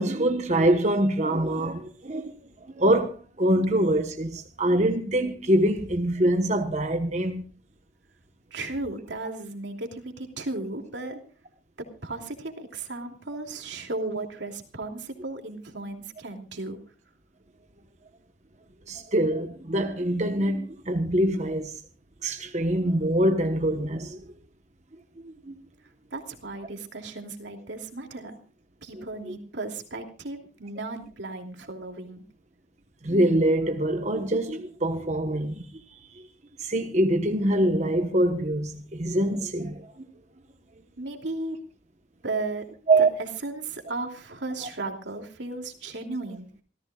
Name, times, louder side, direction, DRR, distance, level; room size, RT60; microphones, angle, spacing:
voice 1, 0.0-7.4 18.9-21.8 22.2-24.3 25.2-25.5 29.0-29.3 33.0-36.3 36.6-40.0 42.9-43.1, right 1 dB, 40° right, 1.2 m, -25 dB
voice 2, 8.5-11.2 11.8-16.8 26.1-28.4 28.8-32.2 41.0-41.6 42.2-42.7 43.4-46.5, right 2 dB, 75° right, 2.8 m, -35 dB
27.5 x 14.5 x 2.4 m
head